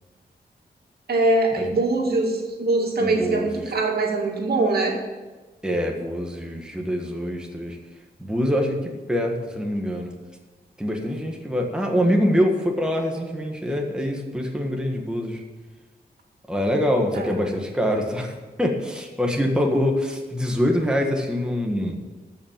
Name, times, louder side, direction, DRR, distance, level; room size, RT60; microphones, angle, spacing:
voice 1, 1.1-5.0 17.1-17.3, right 2 dB, 70° right, 0 dB, 2.3 m, -22 dB
voice 2, 3.0-3.7 5.6-7.8 8.2-10.1 10.8-15.4 16.5-22.0, equal, 5° right, 1 dB, 1.6 m, -24 dB
14.0 x 5.8 x 7.4 m, 1.3 s
wide cardioid pair, 100°, 17 cm